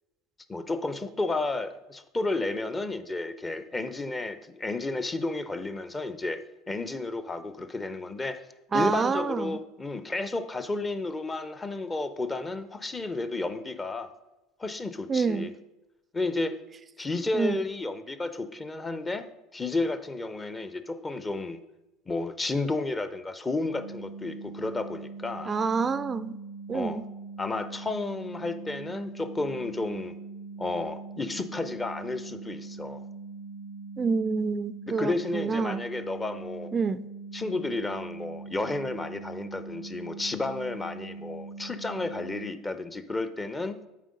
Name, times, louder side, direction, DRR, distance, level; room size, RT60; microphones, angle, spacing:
voice 1, 0.5-6.4 6.7-8.4 8.7-14.1 14.6-15.5 16.1-16.6 17.0-19.3 19.5-21.6 22.1-25.5 26.7-27.0 27.4-30.1 30.6-33.0 34.9-36.7 37.3-43.8, left 2 dB, 20° left, 11 dB, 0.6 m, -32 dB
voice 2, 8.7-9.6 15.1-15.5 17.3-17.6 25.5-26.4 26.7-27.0 34.0-35.8 36.7-37.1, right 5 dB, 30° right, 14 dB, 0.3 m, -27 dB
sound 1, 23.7-42.5, right 4 dB, 55° left, 1.3 m, -42 dB
8.4 x 3.8 x 5.2 m, 1.0 s
hypercardioid pair, 75°, 0 cm